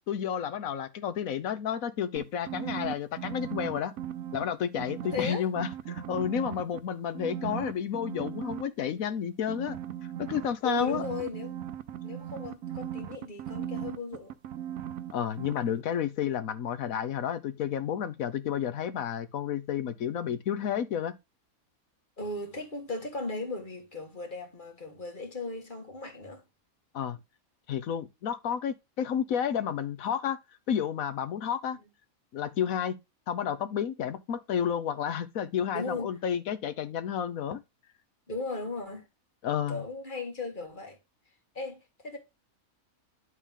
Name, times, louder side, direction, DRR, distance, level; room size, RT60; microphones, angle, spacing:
voice 1, 0.1-3.9 4.3-9.8 10.2-11.0 15.1-21.1 26.9-27.2 27.7-30.4 30.7-31.8 32.3-33.0 33.3-37.6 39.4-39.8, left 8 dB, 70° left, 1.3 m, -31 dB
sound 1, 2.2-4.4 4.7-6.8 7.1-8.6 9.5-15.1 15.4-15.5, right 11 dB, 70° right, 1.0 m, -37 dB
voice 2, 5.0-5.5 10.6-11.6 12.0-14.3 22.2-26.4 35.7-36.2 38.3-39.0 39.7-41.0 41.6-42.2, left 3 dB, 35° left, 2.1 m, -36 dB
11.0 x 3.9 x 3.7 m
omnidirectional pair, 1.5 m